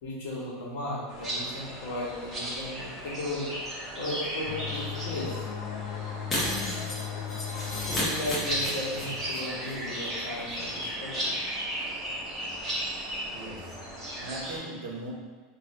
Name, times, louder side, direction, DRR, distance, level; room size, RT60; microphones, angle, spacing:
voice 1, 0.0-3.5 4.0-5.5 7.9-11.3, left 1 dB, 75° left, -6 dB, 1.2 m, -35 dB
sound 1, 1.1-14.6, equal, 15° right, 0.8 m, -36 dB
sound 2, 4.5-9.9, left 8 dB, 60° left, 0.3 m, -38 dB
Shatter, 6.3-9.4 9.6-9.7 10.0-10.1, left 1 dB, 15° left, 0.9 m, -32 dB
voice 2, 13.3-15.1, right 2 dB, 90° right, -1 dB, 0.8 m, -40 dB
2.7 x 2.5 x 4.2 m, 1.4 s
supercardioid pair, 165°, 0 cm